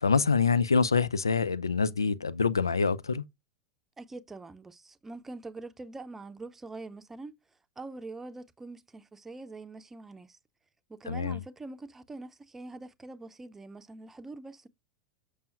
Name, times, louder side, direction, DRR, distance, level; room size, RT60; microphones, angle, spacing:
voice 1, 0.0-3.2 11.1-11.4, left 5 dB, 80° left, 0.5 m, -26 dB
voice 2, 4.0-7.3 7.8-10.4 10.9-14.7, right 3 dB, 15° right, 0.7 m, -44 dB
6.8 x 6.2 x 2.4 m
figure-of-eight pair, 85°, 2 cm